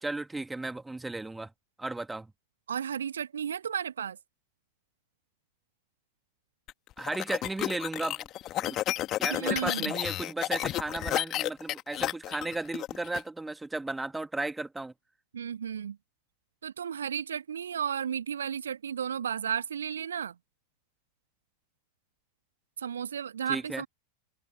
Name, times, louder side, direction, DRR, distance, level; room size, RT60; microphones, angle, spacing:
voice 1, 0.0-1.5 1.8-2.3 7.0-8.3 8.6-8.8 9.2-14.9 23.5-23.8, right 2 dB, 5° right, 2.2 m, -35 dB
voice 2, 2.7-4.2 9.3-10.1 15.3-16.0 16.6-20.3 22.8-23.9, right 8 dB, 65° right, 1.6 m, -33 dB
sound 1, 6.7-13.2, left 14 dB, 35° left, 2.2 m, -31 dB
figure-of-eight pair, 90°, 0 cm